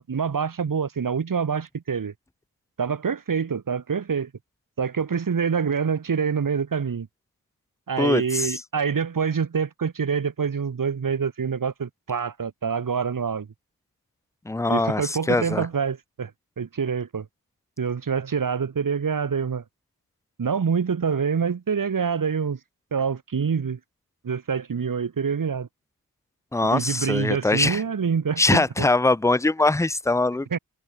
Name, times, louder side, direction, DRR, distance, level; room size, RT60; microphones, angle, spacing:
voice 1, 0.0-2.1 2.8-4.3 4.8-7.1 7.9-13.5 14.7-16.3 16.6-17.3 17.8-19.6 20.4-22.6 22.9-23.8 24.2-25.7 26.7-28.9 30.5-30.6, right 6 dB, 65° right, 3.6 m, -26 dB
voice 2, 8.0-8.6 14.5-15.7 26.5-27.8 28.4-30.5, left 2 dB, 10° left, 0.6 m, -22 dB
wide cardioid pair, 145°, 36 cm